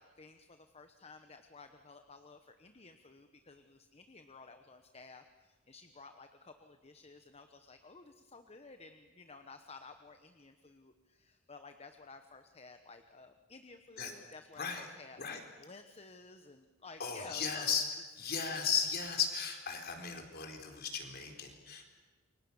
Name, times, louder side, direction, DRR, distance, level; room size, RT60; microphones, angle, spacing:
voice 1, 0.0-17.8 18.5-18.6, left 4 dB, 30° left, 8 dB, 1.1 m, -54 dB
voice 2, 14.5-14.9 15.2-15.4 17.0-17.8 18.2-21.9, left 6 dB, 45° left, 4 dB, 4.3 m, -36 dB
29.0 x 24.0 x 7.1 m, 1.4 s
head